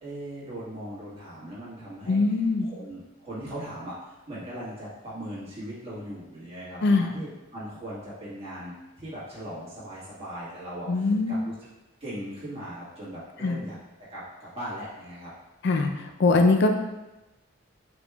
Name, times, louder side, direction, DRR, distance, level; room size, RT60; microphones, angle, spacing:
voice 1, 0.0-2.2 2.6-11.7 12.0-13.8 14.1-15.3, right 1 dB, 30° right, -9 dB, 1.5 m, -39 dB
voice 2, 2.1-2.7 6.8-7.1 10.9-11.4 13.4-13.6 15.6-16.7, left 3 dB, 55° left, 5 dB, 0.4 m, -22 dB
5.0 x 3.4 x 2.2 m, 1.0 s
head